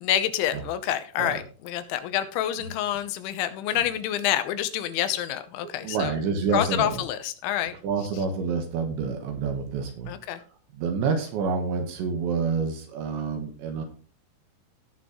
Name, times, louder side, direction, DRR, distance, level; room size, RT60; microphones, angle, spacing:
voice 1, 0.0-6.1 6.5-7.7 10.1-10.4, left 11 dB, 85° left, 11 dB, 3.2 m, -27 dB
voice 2, 5.6-7.0 7.8-10.1 10.7-13.8, right 5 dB, 75° right, 4 dB, 3.5 m, -28 dB
17.5 x 6.2 x 3.1 m, 0.38 s
omnidirectional pair, 5.4 m